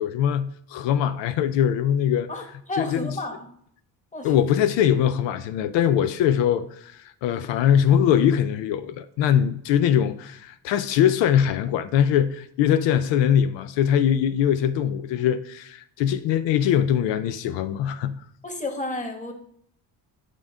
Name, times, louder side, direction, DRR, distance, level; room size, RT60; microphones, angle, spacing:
voice 1, 0.0-2.3 2.8-3.2 4.2-18.2, left 9 dB, 80° left, 0.5 m, -22 dB
voice 2, 2.7-3.5 4.1-4.3 18.4-19.3, left 2 dB, 15° left, 1.3 m, -31 dB
9.4 x 3.7 x 3.6 m
cardioid pair, 90°, 43 cm